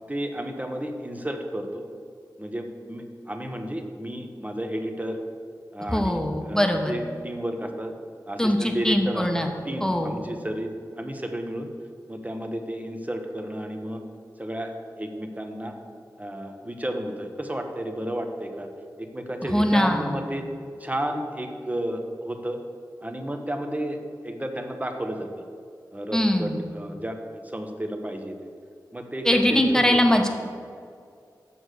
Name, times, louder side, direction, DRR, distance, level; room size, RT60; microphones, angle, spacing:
voice 1, 0.1-1.9 2.4-5.2 5.7-7.9 8.3-11.7 12.1-14.0 14.4-15.7 16.2-18.7 19.0-20.4 20.8-22.6 23.0-25.3 25.9-28.3 28.9-30.0, right 1 dB, 20° right, 4 dB, 1.1 m, -32 dB
voice 2, 5.9-6.9 8.4-9.5 9.8-10.1 19.5-20.2 26.1-26.6 29.2-30.3, left 1 dB, 10° left, 3 dB, 1.2 m, -22 dB
7.2 x 6.2 x 6.5 m, 2.3 s
cardioid pair, 40°, 8 cm